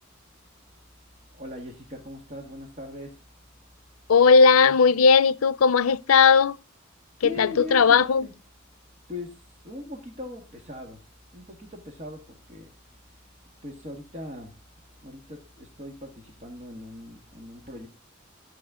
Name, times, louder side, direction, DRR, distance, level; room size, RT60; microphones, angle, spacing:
voice 1, 1.3-3.2 7.2-8.3 9.1-11.0 11.3-12.7 13.1-13.2 13.6-14.6 15.0-17.9, left 2 dB, 35° right, 1.7 m, -40 dB
voice 2, 4.1-6.6 7.2-8.3, left 5 dB, 90° left, 0.5 m, -17 dB
11.5 x 8.7 x 3.6 m
head